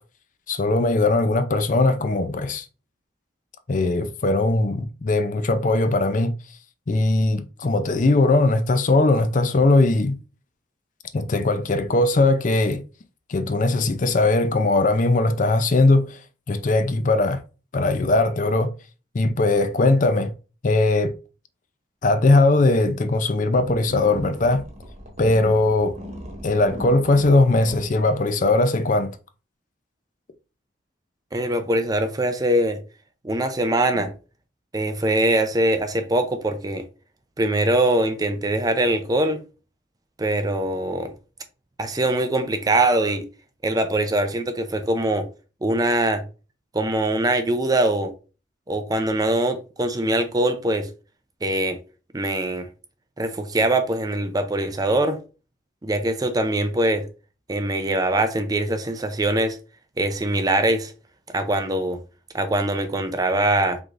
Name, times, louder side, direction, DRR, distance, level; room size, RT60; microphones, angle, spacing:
voice 1, 0.5-2.7 3.7-6.3 6.9-10.2 11.1-12.8 13.3-16.2 16.5-17.4 17.7-18.7 19.1-20.3 20.6-21.1 22.0-24.6 25.2-25.9 26.4-29.1, left 2 dB, 40° left, 0.5 m, -20 dB
sound 1, 23.5-27.8, equal, 35° right, 1.1 m, -38 dB
voice 2, 31.3-32.8 33.2-34.1 34.7-36.8 37.4-39.4 40.2-41.1 41.8-43.2 43.6-45.3 45.6-46.2 46.7-48.1 48.7-50.9 51.4-51.8 52.1-52.7 53.2-55.2 55.8-57.1 57.5-59.6 60.0-60.9 61.3-62.0 62.3-63.8, right 1 dB, 20° right, 0.4 m, -22 dB
4.8 x 3.9 x 2.5 m
head